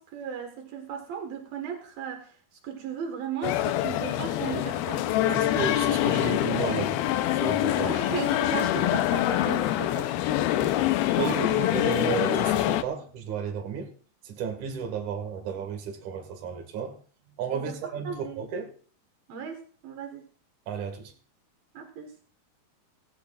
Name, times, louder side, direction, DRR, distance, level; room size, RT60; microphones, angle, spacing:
voice 1, 0.0-2.3 2.6-5.4 7.7-10.1 10.5-10.7 11.3-12.2 17.5-17.8 18.0-18.4 19.3-20.2 21.7-22.1, right 7 dB, 75° right, 3.4 m, -36 dB
sound 1, 3.4-12.8, left 14 dB, 85° left, 2.7 m, -25 dB
voice 2, 5.3-7.1 7.4-7.9 10.6-13.9 14.2-17.0 17.4-18.7 20.7-21.1, right 6 dB, 55° right, 3.3 m, -33 dB
17.0 x 16.0 x 2.5 m
omnidirectional pair, 4.3 m